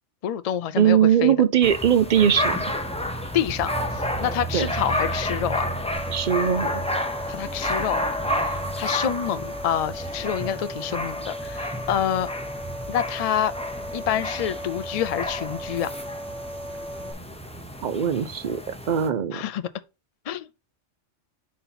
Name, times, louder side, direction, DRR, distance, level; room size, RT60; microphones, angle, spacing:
voice 1, 0.2-1.3 3.3-5.7 7.3-8.0 8.3-12.3 12.9-13.5 13.9-15.9 19.3-19.6 20.3-20.5, left 10 dB, 75° left, 0.3 m, -27 dB
voice 2, 0.8-2.6 4.5-4.7 6.1-6.7 17.8-18.6 18.9-19.4, right 9 dB, 50° right, 0.6 m, -20 dB
sound 1, 1.6-19.1, equal, 5° left, 0.6 m, -30 dB
sound 2, 5.9-17.1, equal, 75° right, 1.9 m, -37 dB
5.5 x 4.3 x 5.6 m
omnidirectional pair, 1.3 m